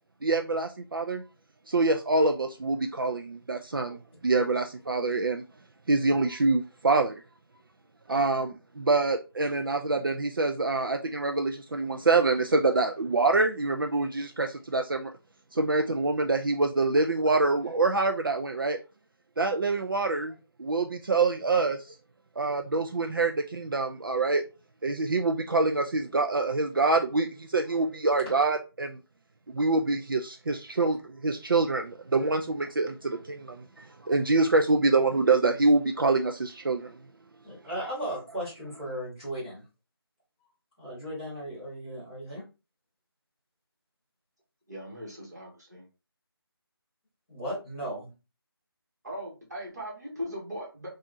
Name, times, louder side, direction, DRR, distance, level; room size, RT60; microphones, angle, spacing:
voice 1, 0.2-1.2 1.7-5.4 5.9-7.2 8.1-15.1 15.5-18.8 19.4-21.9 22.4-24.5 24.8-29.0 29.5-37.0, right 3 dB, 60° right, 4 dB, 0.4 m, -26 dB
voice 2, 37.4-39.6 40.8-42.4 47.3-48.1, equal, 10° left, -10 dB, 1.9 m, -36 dB
voice 3, 44.7-45.9 49.0-50.9, equal, 40° right, -3 dB, 1.5 m, -39 dB
4.0 x 2.4 x 2.5 m, 0.29 s
figure-of-eight pair, 180°, 13 cm